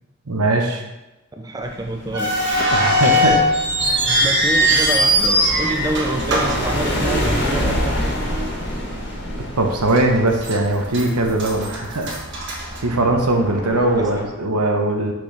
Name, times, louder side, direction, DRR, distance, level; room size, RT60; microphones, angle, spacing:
voice 1, 0.3-0.8 2.7-3.4 3.8-4.2 9.6-12.2 12.6-15.1, right 2 dB, 80° right, 3 dB, 1.0 m, -20 dB
voice 2, 1.4-2.5 4.2-8.1 14.0-14.3, right 1 dB, 15° right, 3 dB, 0.4 m, -27 dB
sound 1, 1.6-14.2, equal, 50° left, 1.8 m, -28 dB
sound 2, 2.1-7.5 7.7-7.8 8.6-8.8 9.3-9.4 10.0-10.6 10.9-13.4, equal, 55° right, 1.4 m, -20 dB
6.1 x 6.1 x 3.3 m, 1.0 s
head